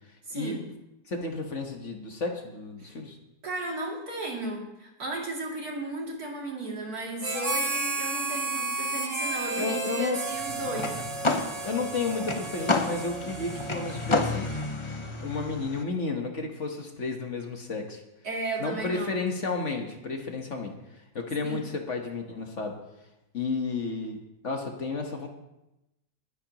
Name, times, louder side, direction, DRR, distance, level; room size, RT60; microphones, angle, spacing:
voice 1, 0.3-0.6 2.8-2.9 3.4-10.9 18.2-19.2 21.4-21.6, right 2 dB, 70° right, -2 dB, 3.3 m, -35 dB
voice 2, 1.1-3.2 9.6-10.2 10.7-10.9 11.6-14.5 15.2-18.0 18.6-20.7 21.1-22.8 23.3-24.2 24.4-25.3, left 3 dB, 50° left, 3 dB, 1.6 m, -32 dB
Harmonica, 7.2-14.9, right 3 dB, 25° right, 1.4 m, -33 dB
sound 1, 10.3-15.8, left 3 dB, 30° left, 0.6 m, -31 dB
21.5 x 10.0 x 3.0 m, 0.91 s
omnidirectional pair, 1.7 m